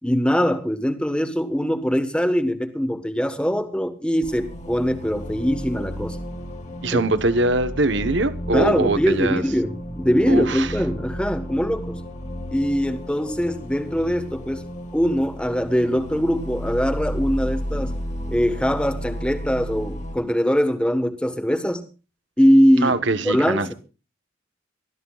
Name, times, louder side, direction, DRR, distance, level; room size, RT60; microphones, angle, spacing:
voice 1, 0.0-6.2 6.9-7.0 8.5-12.0 12.5-14.6 14.9-17.9 18.3-21.8 22.4-23.0 23.2-23.7, equal, 5° left, 1.3 m, -22 dB
sound 1, 4.2-20.2, equal, 35° left, 2.0 m, -33 dB
voice 2, 6.8-9.4 10.3-10.7 22.8-23.7, right 2 dB, 60° right, 1.2 m, -22 dB
25.0 x 13.5 x 2.4 m
head